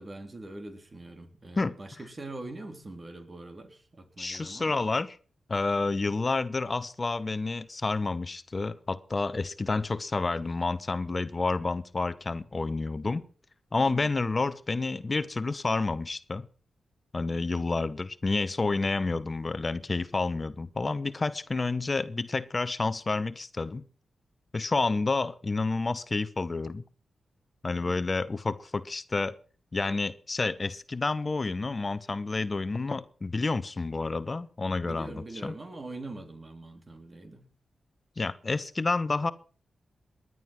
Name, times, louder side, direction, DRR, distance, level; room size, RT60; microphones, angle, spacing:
voice 1, 0.0-4.8 13.9-14.2 27.7-28.0 34.8-37.5, right 2 dB, 40° right, 3.7 m, -43 dB
voice 2, 4.2-5.2 5.5-13.2 13.7-16.5 17.1-23.8 24.5-26.8 27.6-29.4 29.7-35.1 35.4-35.5 38.2-39.3, left 3 dB, 40° left, 1.0 m, -29 dB
19.5 x 11.0 x 6.1 m
supercardioid pair, 45°, 0 cm